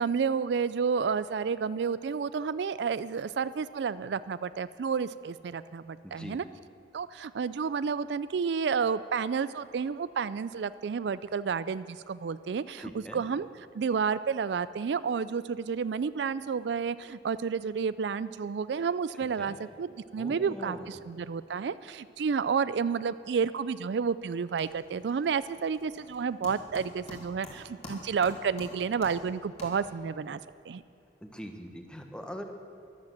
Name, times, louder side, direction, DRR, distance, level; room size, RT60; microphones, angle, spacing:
voice 1, 0.0-6.4 6.9-13.5 13.7-30.4 30.7-30.8, right 6 dB, 75° right, 15 dB, 0.4 m, -30 dB
voice 2, 6.0-6.4 12.8-13.2 19.4-19.5 20.2-21.0 31.2-32.4, equal, 5° left, 4 dB, 1.2 m, -42 dB
sound 1, 23.7-24.1 24.3-30.2, left 1 dB, 40° left, 3.2 m, -48 dB
13.0 x 11.5 x 7.6 m, 2.6 s
head